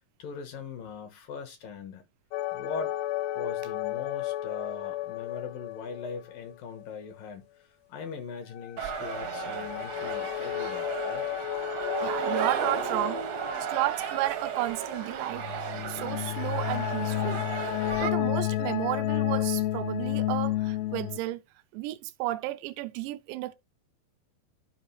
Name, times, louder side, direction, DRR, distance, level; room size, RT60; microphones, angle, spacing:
voice 1, 0.2-2.0 2.5-2.9 3.4-7.4 7.9-11.2, left 5 dB, 65° left, 2.5 m, -40 dB
sound 1, 2.3-6.5 6.8-6.9 8.5-14.2 15.3-21.2, left 15 dB, 80° left, 2.3 m, -32 dB
sound 2, 8.8-18.1, right 7 dB, 70° right, 1.6 m, -34 dB
voice 2, 12.0-13.2 13.6-15.4 15.9-21.4 21.7-23.5, right 16 dB, 85° right, 2.9 m, -32 dB
13.0 x 5.0 x 3.2 m
omnidirectional pair, 5.0 m